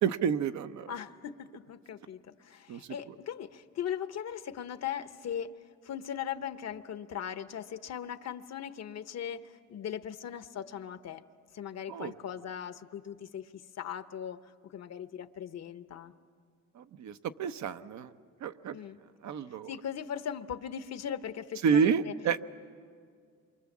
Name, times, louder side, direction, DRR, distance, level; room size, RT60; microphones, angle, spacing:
voice 1, 0.0-0.9 2.7-2.8 11.9-12.1 16.8-18.1 18.4-18.7 19.2-19.7 21.6-22.4, right 7 dB, 70° right, 9 dB, 0.8 m, -29 dB
voice 2, 0.9-5.6 5.8-11.2 11.5-16.1 18.7-19.0 19.7-22.1, left 9 dB, 60° left, 11 dB, 1.0 m, -39 dB
27.5 x 24.5 x 7.3 m, 2.1 s
cardioid pair, 90°, 30 cm